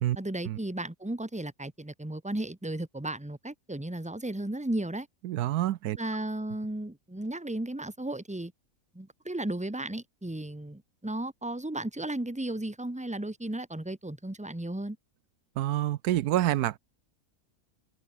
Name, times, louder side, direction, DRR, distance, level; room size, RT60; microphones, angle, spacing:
voice 1, 0.1-5.1 6.0-8.5 8.9-15.0, right 1 dB, 5° right, 1.5 m, -34 dB
voice 2, 5.2-6.0 15.6-16.8, right 14 dB, 85° right, 1.2 m, -27 dB
open air
omnidirectional pair, 1.6 m